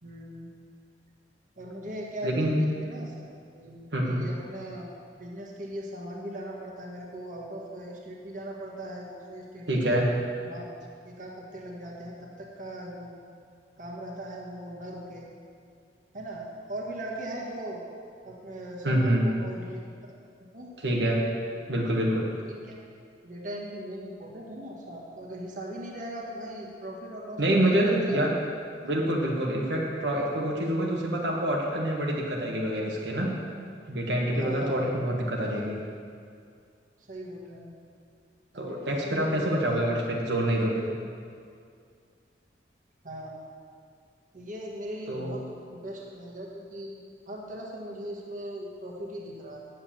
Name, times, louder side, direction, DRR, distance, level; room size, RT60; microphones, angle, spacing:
voice 1, 0.0-0.5 1.6-3.3 3.5-4.9 5.2-9.9 10.4-10.7 11.0-13.1 13.8-15.3 16.1-17.8 18.2-20.1 20.5-20.7 22.5-22.9 23.2-28.2 34.3-34.9 37.0-37.7 38.5-39.9 43.0-43.4 44.3-45.4 45.7-47.0 47.3-49.6, right 1 dB, 45° right, -3 dB, 1.7 m, -39 dB
voice 2, 2.2-2.6 3.9-4.2 9.7-10.1 18.8-19.2 20.8-21.2 21.7-22.2 27.4-28.3 28.7-33.3 33.9-35.8 38.5-40.8 45.1-45.4, right 1 dB, 80° right, -2 dB, 1.5 m, -26 dB
9.5 x 7.6 x 7.3 m, 2.3 s
head